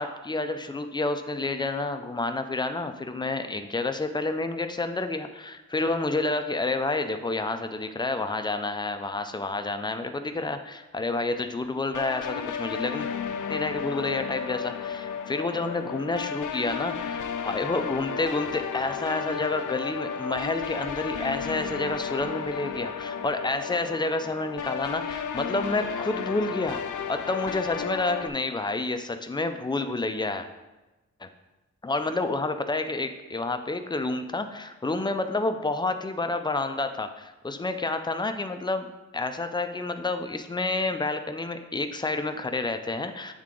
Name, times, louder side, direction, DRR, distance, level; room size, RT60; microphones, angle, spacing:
voice 1, 0.0-13.1 13.5-26.8 27.1-30.5 31.2-31.3 31.8-38.9 39.1-43.3, left 2 dB, 15° left, 8 dB, 0.4 m, -29 dB
sound 1, 11.9-28.3, left 7 dB, 85° left, 0.5 m, -33 dB
7.5 x 3.6 x 3.7 m, 1.1 s
wide cardioid pair, 115°, 30 cm